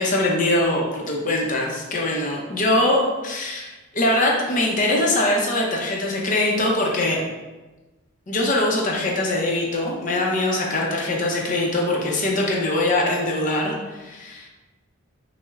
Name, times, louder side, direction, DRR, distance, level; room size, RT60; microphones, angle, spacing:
voice 1, 0.0-7.2 8.3-14.5, left 1 dB, 35° left, -1 dB, 0.5 m, -22 dB
6.1 x 2.1 x 2.3 m, 1.2 s
head